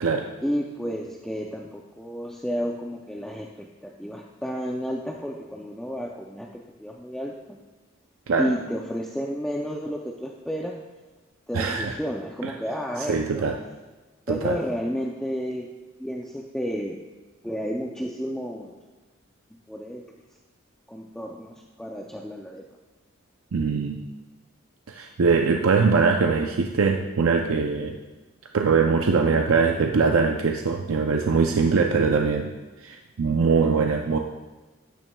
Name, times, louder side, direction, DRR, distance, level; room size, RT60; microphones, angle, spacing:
voice 1, 0.4-7.6 8.4-10.8 11.5-13.5 14.3-15.7 16.0-17.0 17.4-18.8 19.7-20.0 20.9-22.6, equal, 5° left, -1 dB, 0.4 m, -31 dB
voice 2, 11.5-12.0 12.4-12.5 13.1-13.6 14.3-14.6 23.5-24.0 24.9-27.9 28.5-32.5 32.8-34.2, right 5 dB, 75° right, 3 dB, 0.5 m, -22 dB
12.5 x 9.0 x 2.3 m, 1.2 s
head